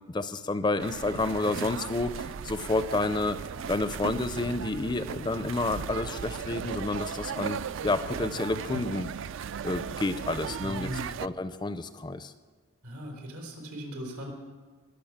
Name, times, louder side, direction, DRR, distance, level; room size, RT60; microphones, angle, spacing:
voice 1, 0.1-3.4 3.7-9.1 9.6-10.9 11.2-12.3, left 2 dB, 20° left, 12 dB, 0.4 m, -30 dB
sound 1, 0.8-11.3, right 7 dB, 60° right, 0.3 m, -37 dB
voice 2, 10.6-11.1 12.8-14.3, equal, 90° right, 0 dB, 3.7 m, -38 dB
20.5 x 6.9 x 7.3 m, 1.4 s
head